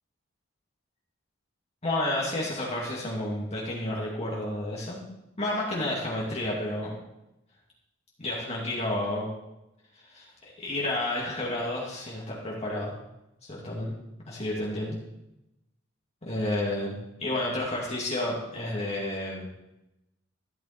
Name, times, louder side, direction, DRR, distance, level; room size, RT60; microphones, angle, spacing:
voice 1, 1.8-5.0 5.4-6.9 8.2-9.3 10.0-12.9 13.4-13.9 14.2-15.0 16.2-19.5, left 1 dB, 35° left, -4 dB, 2.4 m, -31 dB
14.5 x 10.0 x 4.4 m, 0.90 s
head